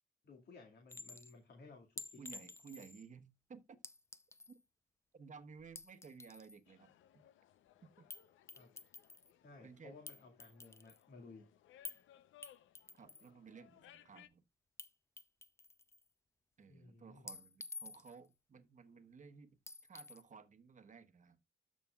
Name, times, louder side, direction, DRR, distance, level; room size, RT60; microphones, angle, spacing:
voice 1, 0.2-2.2 8.5-8.7 9.4-11.5 16.7-17.3, left 3 dB, 55° left, 2.0 m, -57 dB
Chink clink, 0.9-1.3 2.0-3.1 3.8-4.6 5.6-6.6 8.1-8.2 8.5-9.3 10.1-11.0 11.8-12.0 12.4-13.3 14.8-14.9 15.2-16.0 17.3-18.3 19.7-20.2, left 3 dB, 15° left, 0.6 m, -51 dB
voice 2, 2.2-3.6 4.5-4.6 5.1-6.9 7.8-8.1 9.6-10.0 12.9-14.4 16.6-21.4, right 5 dB, 40° right, 1.1 m, -56 dB
sound 1, 6.7-14.3, left 11 dB, 75° left, 0.7 m, -65 dB
13.0 x 5.2 x 2.3 m
cardioid pair, 90°, 20 cm